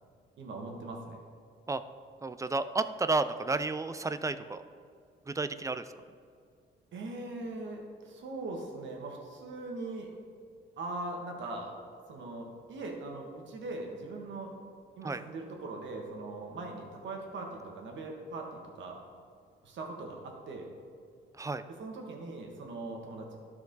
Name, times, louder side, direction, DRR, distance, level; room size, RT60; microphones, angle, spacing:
voice 1, 0.4-1.2 6.9-10.1 10.8-11.8 12.1-14.5 15.0-19.0 19.6-20.7 21.8-23.4, right 2 dB, 70° right, 1 dB, 1.6 m, -40 dB
voice 2, 2.2-4.6 5.3-5.8 15.0-15.2 21.4-21.6, right 3 dB, 15° right, 12 dB, 0.4 m, -31 dB
12.5 x 4.7 x 3.9 m, 2.2 s
cardioid pair, 90°, 20 cm